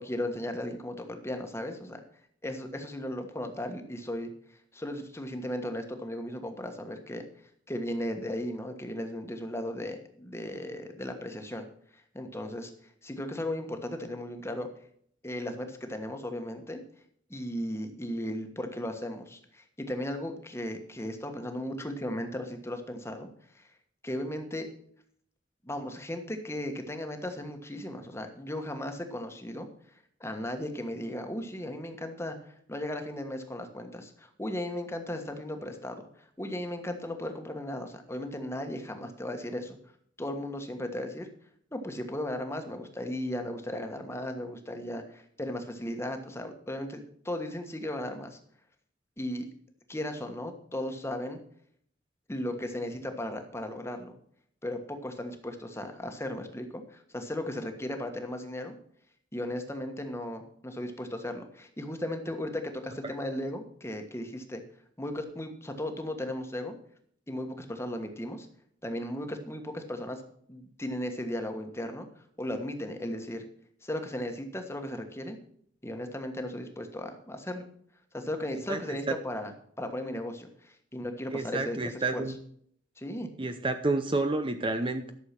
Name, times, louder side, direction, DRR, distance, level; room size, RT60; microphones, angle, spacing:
voice 1, 0.0-2.0 2.4-4.3 4.7-7.2 7.7-11.7 12.1-12.7 13.0-14.7 15.2-16.8 17.3-23.3 23.5-23.7 24.0-24.7 25.6-29.7 30.2-39.8 40.2-41.3 41.7-48.4 49.2-49.4 49.9-51.4 52.3-54.1 54.6-58.8 59.3-64.6 65.0-66.7 67.3-68.5 68.8-70.2 70.5-72.1 72.4-73.4 73.8-75.4 75.8-77.6 78.1-82.2 83.0-83.3, left 1 dB, 15° left, 5 dB, 1.4 m, -36 dB
voice 2, 81.3-82.4 83.4-85.1, right 2 dB, 30° right, 8 dB, 0.7 m, -29 dB
11.5 x 6.7 x 5.9 m, 0.63 s
head